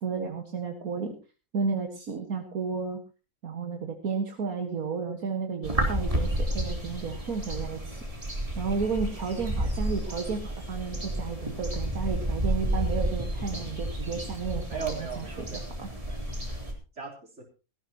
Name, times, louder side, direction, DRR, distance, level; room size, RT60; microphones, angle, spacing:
voice 1, 0.0-1.1 1.5-3.0 3.4-8.0 8.6-14.9 15.5-15.9, right 5 dB, 70° right, 3 dB, 2.1 m, -32 dB
sound 1, 5.6-16.7, right 1 dB, 20° right, 3.3 m, -31 dB
voice 2, 14.7-16.7 17.0-17.4, right 6 dB, 50° right, 1 dB, 4.1 m, -39 dB
18.0 x 14.5 x 2.9 m, 0.32 s
omnidirectional pair, 1.6 m